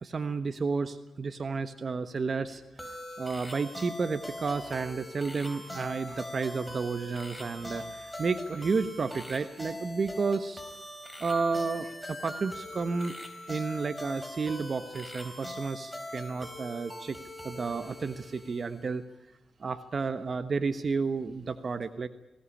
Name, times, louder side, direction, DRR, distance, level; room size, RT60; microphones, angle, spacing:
voice 1, 0.0-2.6 3.2-10.6 11.2-13.1 13.5-17.2 17.4-19.0 19.6-22.1, right 4 dB, 45° right, 9 dB, 1.3 m, -31 dB
sound 1, 2.8-19.0, left 1 dB, 5° left, 4.3 m, -42 dB
21.0 x 17.5 x 10.0 m, 0.93 s
cardioid pair, 95°, 0 cm